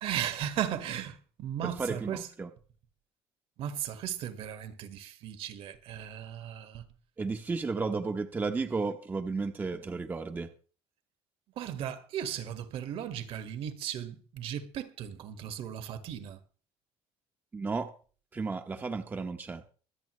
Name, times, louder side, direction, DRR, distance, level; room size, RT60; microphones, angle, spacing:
voice 1, 0.0-2.3 3.6-6.9 11.6-16.4, right 10 dB, 55° right, 1.7 m, -36 dB
voice 2, 1.6-2.5 7.2-10.5 17.5-17.9 18.3-19.6, right 4 dB, 15° right, 0.8 m, -33 dB
24.5 x 8.5 x 3.2 m
cardioid pair, 145°, 11 cm